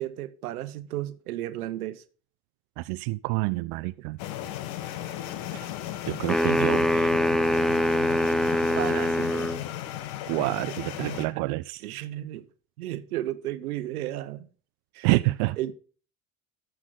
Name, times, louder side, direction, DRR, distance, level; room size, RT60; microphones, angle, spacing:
voice 1, 0.0-2.0 8.7-9.6 10.7-12.5 12.8-14.5 14.9-15.1 15.6-15.7, right 14 dB, 80° right, 0.9 m, -34 dB
voice 2, 2.8-4.2 6.1-7.1 10.3-11.8 15.0-15.6, right 21 dB, 65° right, 0.5 m, -27 dB
sound 1, 4.2-11.3, left 12 dB, 65° left, 1.3 m, -35 dB
sound 2, 6.3-9.6, equal, ahead, 0.4 m, -24 dB
13.0 x 6.1 x 3.8 m
hypercardioid pair, 65°, 43 cm